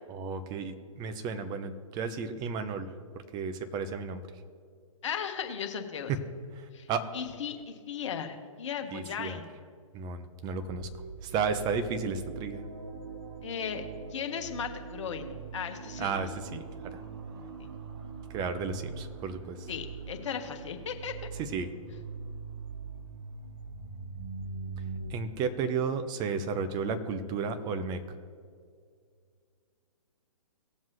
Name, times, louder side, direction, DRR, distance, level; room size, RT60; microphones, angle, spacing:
voice 1, 0.1-2.9 3.3-4.2 6.9-7.0 8.9-9.4 9.9-10.9 11.2-12.6 16.0-17.0 18.3-19.6 21.4-21.7 25.1-28.0, right 5 dB, 25° right, 9 dB, 0.8 m, -33 dB
voice 2, 5.0-6.1 6.7-6.9 7.1-9.5 13.4-13.8 14.1-16.3 19.7-21.2, left 7 dB, 55° left, 5 dB, 1.4 m, -36 dB
sound 1, 10.6-25.1, right 4 dB, 50° right, 1.2 m, -42 dB
18.5 x 7.3 x 3.1 m, 2.1 s
figure-of-eight pair, 130°, 18 cm